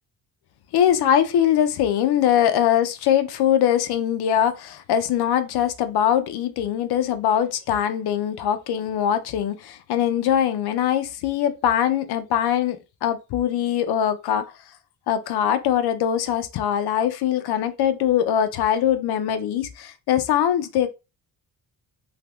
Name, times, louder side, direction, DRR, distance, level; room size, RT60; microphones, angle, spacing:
voice 1, 0.7-14.5 15.1-20.9, left 10 dB, 90° left, 0.5 m, -22 dB
3.3 x 2.8 x 2.3 m
wide cardioid pair, 165°, 38 cm